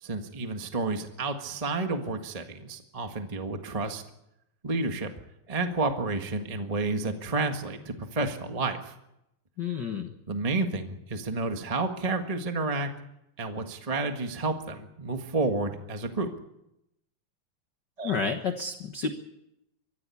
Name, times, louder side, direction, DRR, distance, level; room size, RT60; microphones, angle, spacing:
voice 1, 0.0-4.0 4.6-5.1 5.5-8.9 9.7-9.8 10.3-12.9 13.4-16.3 18.0-18.1, right 3 dB, 20° right, 5 dB, 0.9 m, -30 dB
voice 2, 9.6-10.1 18.0-19.1, left 5 dB, 50° left, 6 dB, 1.4 m, -30 dB
24.0 x 15.0 x 8.5 m, 0.85 s
omnidirectional pair, 3.4 m